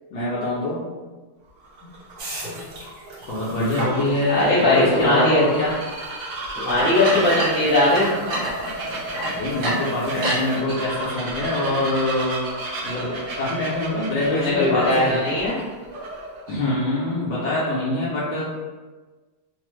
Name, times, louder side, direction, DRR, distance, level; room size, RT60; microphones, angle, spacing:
voice 1, 0.1-0.9 1.8-1.9 3.3-5.7 9.3-12.4 12.8-15.2 16.5-18.4, left 2 dB, 70° left, -8 dB, 1.0 m, -24 dB
Bird vocalization bird call bird song, 1.5-16.5, right 2 dB, 85° right, 0.6 m, -33 dB
sound 1, 2.2-4.2 4.6-4.8 5.7-5.8 6.7-10.6, right 1 dB, 60° right, 1.4 m, -29 dB
voice 2, 4.3-5.4 6.5-8.1 14.3-15.5, left 1 dB, 20° left, -8 dB, 0.6 m, -19 dB
3.3 x 2.0 x 3.0 m, 1.3 s
omnidirectional pair, 2.2 m